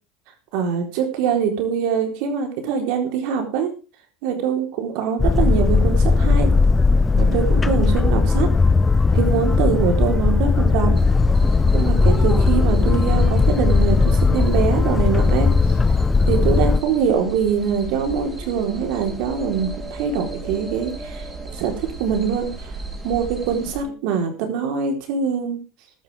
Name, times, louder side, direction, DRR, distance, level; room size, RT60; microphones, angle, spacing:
voice 1, 0.5-3.7 4.2-6.5 7.2-8.5 9.1-11.0 11.7-15.5 16.3-21.3 21.6-22.7 23.0-25.6, right 7 dB, 70° right, 4 dB, 4.0 m, -23 dB
Boat Water vehicle, 5.2-16.8, left 4 dB, 15° left, 0.5 m, -17 dB
sound 1, 10.9-23.8, right 3 dB, 15° right, 3.6 m, -34 dB
14.5 x 12.0 x 3.6 m, 0.32 s
supercardioid pair, 120°, 0 cm